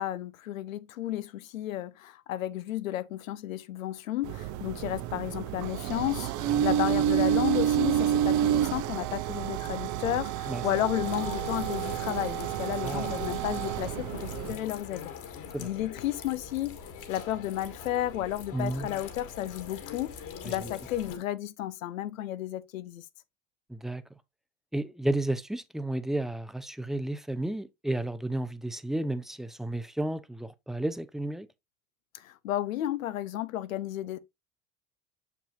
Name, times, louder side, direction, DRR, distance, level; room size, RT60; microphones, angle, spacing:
voice 1, 0.0-16.8 17.1-23.0 32.1-34.2, left 13 dB, 80° left, 0.7 m, -33 dB
sound 1, 4.2-14.6, right 10 dB, 45° right, 0.7 m, -29 dB
sound 2, 11.0-21.2, left 6 dB, 50° left, 2.0 m, -43 dB
voice 2, 12.8-13.4 15.5-15.7 18.5-18.9 20.4-20.7 23.7-24.0 24.7-31.5, right 1 dB, ahead, 0.6 m, -32 dB
7.0 x 6.0 x 2.7 m
hypercardioid pair, 75°, 40 cm